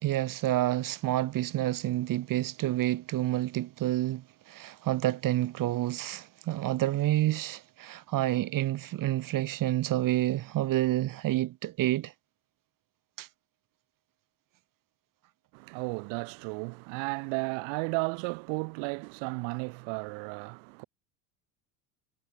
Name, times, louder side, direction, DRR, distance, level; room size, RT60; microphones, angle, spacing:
voice 1, 0.0-12.1 13.2-13.3, right 15 dB, 45° right, 1.4 m, -29 dB
voice 2, 15.5-20.8, right 38 dB, 70° right, 2.5 m, -34 dB
supercardioid pair, 100°, 46 cm